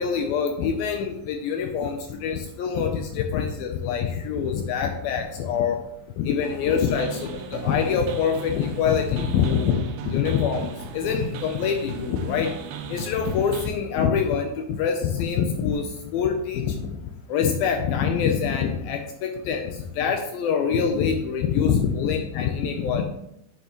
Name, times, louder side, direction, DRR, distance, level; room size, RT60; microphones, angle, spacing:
voice 1, 0.0-5.8 6.2-12.5 12.9-16.9 17.3-23.0, left 7 dB, 85° left, 4 dB, 2.1 m, -25 dB
sound 1, 6.4-13.7, right 8 dB, 80° right, 2.5 m, -37 dB
10.5 x 6.9 x 3.0 m, 0.80 s
omnidirectional pair, 5.0 m